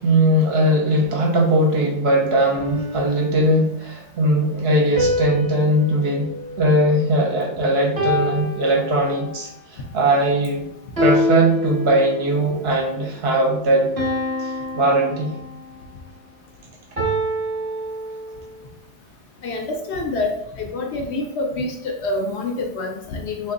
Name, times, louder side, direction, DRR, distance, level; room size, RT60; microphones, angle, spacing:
voice 1, 0.0-10.6 11.0-13.9 14.4-15.3, right 1 dB, 60° right, 0 dB, 0.9 m, -19 dB
sound 1, 2.6-3.8 5.0-7.4 8.0-9.4 11.0-12.4 14.0-15.8 17.0-18.6, left 1 dB, 30° right, 0.8 m, -26 dB
voice 2, 19.4-23.5, left 2 dB, 65° left, 2 dB, 0.8 m, -26 dB
2.9 x 2.6 x 3.7 m, 0.73 s
omnidirectional pair, 1.3 m